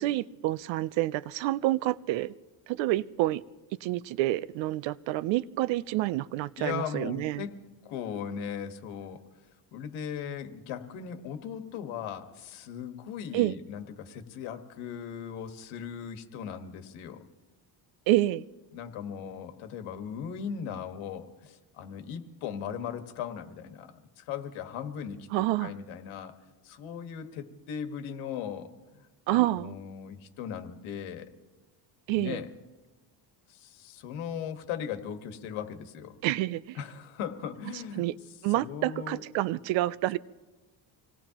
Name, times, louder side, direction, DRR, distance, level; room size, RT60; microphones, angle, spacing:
voice 1, 0.0-2.3 2.7-3.4 3.8-7.4 13.3-13.5 18.1-18.5 25.3-25.7 29.3-29.8 32.1-32.4 36.2-36.8 38.0-38.1 38.4-40.2, right 16 dB, 70° right, 0.6 m, -28 dB
voice 2, 6.6-9.2 9.7-17.2 18.7-25.3 25.6-26.4 26.6-31.3 32.1-32.5 33.5-36.1 36.7-38.0 38.5-39.2, left 8 dB, 90° left, 1.6 m, -38 dB
26.0 x 19.0 x 2.9 m
cardioid pair, 165°, 47 cm